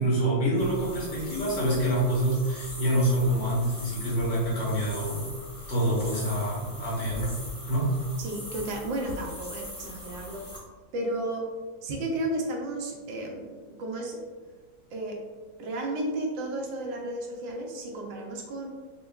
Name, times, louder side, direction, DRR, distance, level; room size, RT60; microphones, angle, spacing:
voice 1, 0.0-5.3 5.7-7.3 7.7-7.9, right 1 dB, 65° left, -6 dB, 1.7 m, -26 dB
sound 1, 0.6-10.6, left 2 dB, 20° left, 0.9 m, -41 dB
voice 2, 8.2-10.5 10.9-11.4 11.8-14.2 14.9-15.2 15.6-18.7, right 1 dB, 80° right, 0 dB, 1.4 m, -33 dB
5.2 x 2.3 x 2.3 m, 1.4 s
omnidirectional pair, 2.0 m